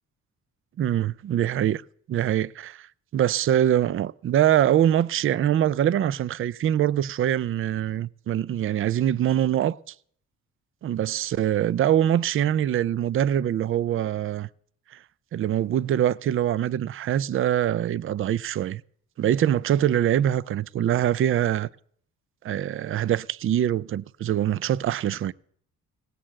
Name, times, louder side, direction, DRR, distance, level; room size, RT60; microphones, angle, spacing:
voice 1, 0.8-1.8 2.1-2.9 3.1-9.8 10.8-14.5 14.9-15.0 15.3-18.8 19.2-21.7 22.4-25.3, right 11 dB, 45° right, 0.4 m, -23 dB
17.5 x 6.7 x 7.5 m
cardioid pair, 90°, 30 cm